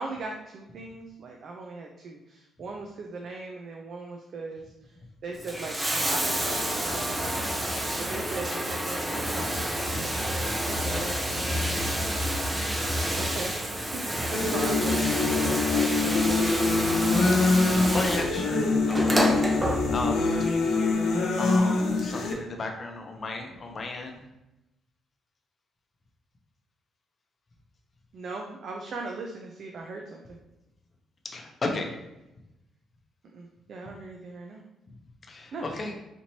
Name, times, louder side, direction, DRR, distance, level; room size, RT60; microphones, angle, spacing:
voice 1, 0.0-4.9 5.2-7.5 8.0-11.9 12.2-12.3 13.1-16.5 28.1-30.4 33.3-34.6 35.5-35.6, right 3 dB, 60° right, 1 dB, 0.5 m, -39 dB
Bathtub (filling or washing), 5.3-20.3 21.4-21.5, equal, 15° right, 0.6 m, -29 dB
sound 1, 14.3-22.3, left 3 dB, 75° left, 0.7 m, -24 dB
voice 2, 17.3-24.3 31.2-31.9 35.3-35.9, left 2 dB, 40° left, 3 dB, 0.7 m, -35 dB
4.3 x 2.9 x 2.8 m, 0.94 s
cardioid pair, 90°, 0 cm